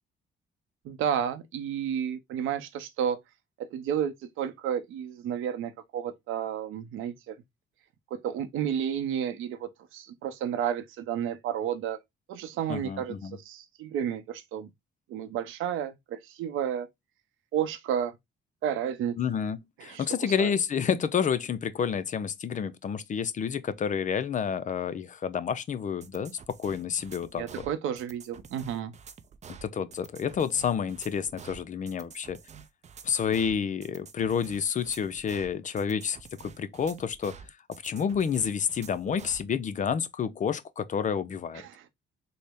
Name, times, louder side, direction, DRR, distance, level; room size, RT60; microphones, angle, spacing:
voice 1, 0.8-3.2 3.6-7.3 8.1-12.0 12.3-14.7 15.1-16.9 17.5-18.2 18.6-19.2 19.8-20.6 27.4-28.9 41.5-41.9, right 9 dB, 90° right, 0.7 m, -32 dB
voice 2, 12.7-13.4 19.2-27.7 29.6-32.4 33.0-37.4 37.7-41.6, left 7 dB, 40° left, 0.4 m, -29 dB
sound 1, 26.0-39.5, right 7 dB, 35° right, 0.5 m, -49 dB
3.9 x 2.1 x 3.4 m
cardioid pair, 90°, 20 cm